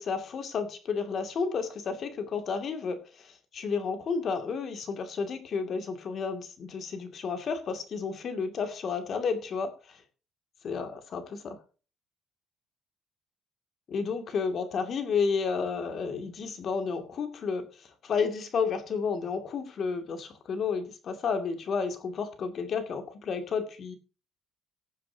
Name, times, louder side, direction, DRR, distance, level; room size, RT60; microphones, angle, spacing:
voice 1, 0.0-10.0 10.6-11.6 13.9-23.9, left 5 dB, 50° left, 7 dB, 2.5 m, -31 dB
19.5 x 7.5 x 2.9 m, 0.35 s
cardioid pair, 110°, 0 cm